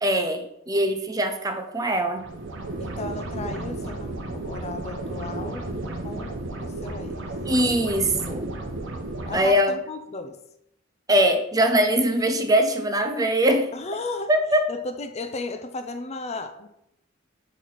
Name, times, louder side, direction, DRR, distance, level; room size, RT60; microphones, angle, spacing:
voice 1, 0.0-2.3 7.5-8.5 9.3-9.7 11.1-13.7 14.3-14.7, right 1 dB, 20° right, 6 dB, 0.6 m, -22 dB
sound 1, 2.2-9.4, right 2 dB, 70° right, 0.9 m, -33 dB
voice 2, 2.8-5.7 6.0-7.2 9.3-10.4 13.7-14.3 14.7-16.7, left 2 dB, 35° left, 8 dB, 0.5 m, -35 dB
6.0 x 4.6 x 4.1 m, 0.79 s
head